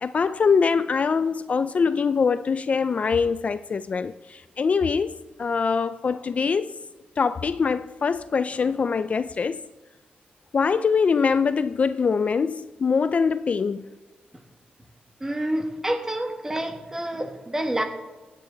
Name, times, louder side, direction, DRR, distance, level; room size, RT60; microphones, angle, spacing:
voice 1, 0.0-6.7 7.2-9.6 10.5-13.9, left 5 dB, 45° left, 0.3 m, -23 dB
voice 2, 15.2-17.8, right 1 dB, 15° right, 1.5 m, -28 dB
16.0 x 10.0 x 3.9 m
wide cardioid pair, 130°, 3 cm